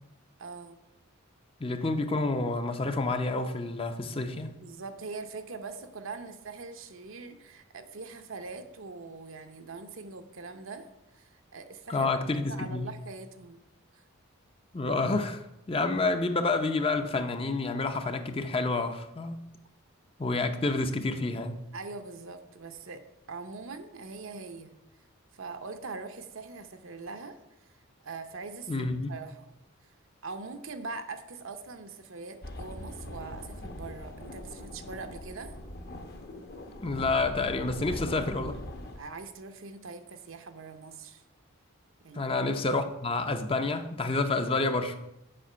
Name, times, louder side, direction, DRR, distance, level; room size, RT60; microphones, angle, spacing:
voice 1, 0.4-0.8 4.6-10.9 11.1-13.6 13.9-14.0 21.7-24.8 25.3-27.4 27.6-27.7 28.0-29.5 30.2-35.6 37.9-38.0 39.0-41.2 42.0-42.3, right 4 dB, 65° right, 0.8 m, -42 dB
voice 2, 1.6-4.5 11.9-12.9 14.7-19.4 20.2-21.6 28.7-29.1 36.8-38.6 42.1-45.0, left 3 dB, 25° left, 0.6 m, -29 dB
sound 1, 32.4-39.0, left 1 dB, 45° left, 0.9 m, -41 dB
7.6 x 5.2 x 6.8 m
head